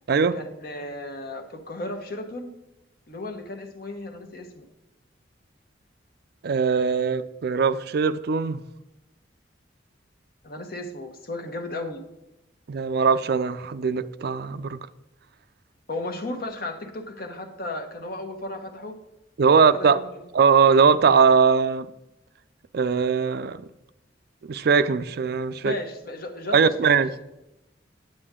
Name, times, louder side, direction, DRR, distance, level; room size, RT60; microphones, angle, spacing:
voice 1, 0.3-2.5 3.1-4.6 10.4-12.0 15.9-18.9 19.4-20.2 25.5-27.0, left 2 dB, 55° left, 5 dB, 1.1 m, -35 dB
voice 2, 6.4-8.6 12.7-14.8 19.4-20.0 20.3-21.9 22.7-23.6 24.4-25.7 26.5-27.3, right 5 dB, 60° right, 13 dB, 0.4 m, -20 dB
9.1 x 8.7 x 3.7 m, 0.92 s
head